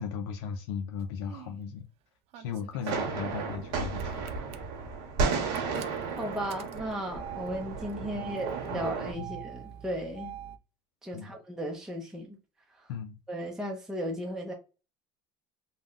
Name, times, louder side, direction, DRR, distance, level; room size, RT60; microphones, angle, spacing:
voice 1, 0.0-1.9 2.4-4.3 8.0-8.4 8.7-8.9 9.2-9.4 11.1-11.4 12.9-13.2, left 6 dB, 85° left, 0.4 m, -37 dB
Engine starting, 1.0-1.6 2.3-3.7 4.0-4.6 5.2-10.6, right 11 dB, 50° right, 0.4 m, -45 dB
sound 1, 2.8-9.1, right 4 dB, 85° right, 1.1 m, -33 dB
voice 2, 6.2-10.3 11.0-12.4 12.8-12.9 13.3-14.5, equal, 5° right, 0.6 m, -35 dB
3.5 x 2.2 x 2.4 m
supercardioid pair, 120°, 13 cm